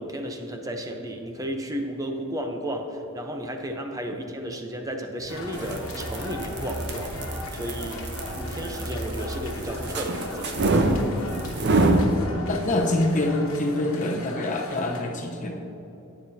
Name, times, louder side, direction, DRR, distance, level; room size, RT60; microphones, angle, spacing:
voice 1, 0.0-7.1 7.5-8.1 8.3-10.5, equal, 15° right, 4 dB, 0.7 m, -33 dB
sound 1, 5.3-15.0, left 2 dB, 80° left, 1.2 m, -38 dB
sound 2, 5.4-12.1, right 2 dB, 55° right, 0.6 m, -26 dB
voice 2, 12.5-15.6, left 1 dB, 35° left, 1 dB, 0.9 m, -25 dB
11.5 x 8.9 x 2.8 m, 2.9 s
head